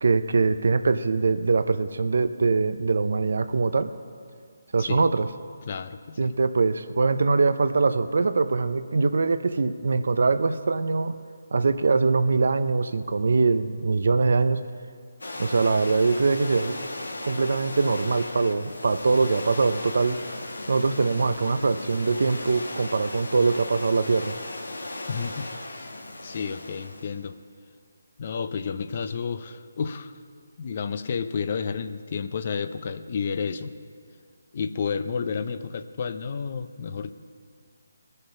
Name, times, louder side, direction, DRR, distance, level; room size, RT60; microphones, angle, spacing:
voice 1, 0.0-3.9 4.7-5.3 6.2-11.1 11.5-14.6 15.4-16.8 17.2-20.2 20.7-24.4, right 4 dB, 65° right, 11 dB, 0.6 m, -23 dB
voice 2, 5.7-6.3 25.1-25.9 26.2-27.4 28.2-30.1 30.6-33.7 34.5-37.1, left 6 dB, 45° left, 11 dB, 0.5 m, -31 dB
sound 1, 15.2-27.2, left 2 dB, 90° left, 1.4 m, -37 dB
20.0 x 6.7 x 5.6 m, 2.1 s
figure-of-eight pair, 160°, 0 cm